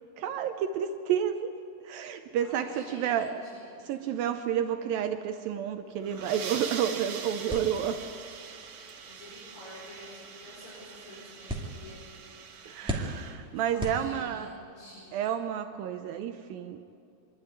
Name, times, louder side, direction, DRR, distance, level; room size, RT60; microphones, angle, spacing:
voice 1, 0.2-1.5 1.9-3.4 3.9-8.0 12.7-14.5 15.1-16.8, right 9 dB, 75° right, 7 dB, 2.2 m, -30 dB
voice 2, 2.4-3.9 9.0-12.0 13.5-15.2, left 1 dB, 85° left, -8 dB, 7.6 m, -49 dB
sound 1, 5.9-13.3, right 6 dB, 60° right, 2.7 m, -43 dB
sound 2, 7.5-14.6, right 1 dB, 5° right, 0.8 m, -40 dB
25.5 x 12.0 x 9.6 m, 2.4 s
omnidirectional pair, 4.6 m